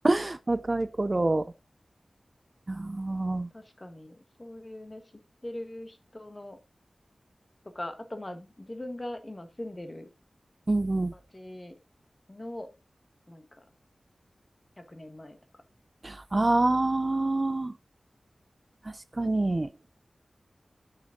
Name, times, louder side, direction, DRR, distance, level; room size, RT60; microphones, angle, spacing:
voice 1, 0.0-1.5 2.7-3.5 10.7-11.1 16.0-17.7 19.2-19.7, right 2 dB, 35° right, 0.5 m, -26 dB
voice 2, 3.5-5.0 5.4-6.6 7.7-10.1 11.1-11.8 12.3-12.7 13.3-13.6 14.9-15.4, left 1 dB, 30° left, 1.5 m, -41 dB
8.5 x 6.3 x 3.8 m
wide cardioid pair, 60°, 0 cm